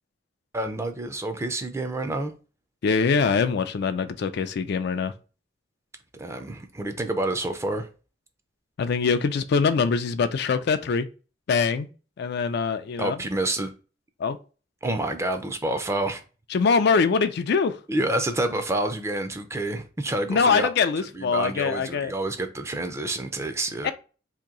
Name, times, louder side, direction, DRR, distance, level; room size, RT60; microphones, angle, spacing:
voice 1, 0.5-2.3 6.1-7.9 13.0-13.7 14.8-16.2 17.9-20.7 21.1-23.9, right 2 dB, 15° right, 0.4 m, -28 dB
voice 2, 2.8-5.1 8.8-11.1 11.5-11.9 12.2-13.2 14.2-14.4 16.5-17.8 20.3-22.1 23.8-23.9, left 5 dB, 60° left, 0.4 m, -23 dB
2.9 x 2.6 x 3.7 m
head